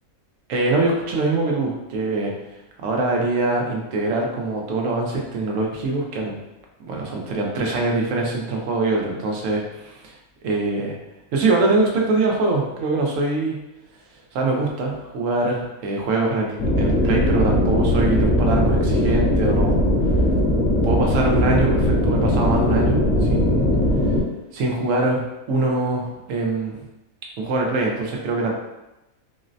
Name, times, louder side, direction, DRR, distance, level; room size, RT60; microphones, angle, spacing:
voice 1, 0.5-2.3 2.8-6.4 6.9-10.1 10.4-11.0 11.3-13.6 14.3-19.9 20.8-23.6 24.5-26.8 27.4-28.5, right 3 dB, 70° right, 0 dB, 0.9 m, -23 dB
sound 1, 16.6-24.2, left 1 dB, 70° left, 1.1 m, -19 dB
3.9 x 2.0 x 2.5 m, 0.96 s
omnidirectional pair, 1.5 m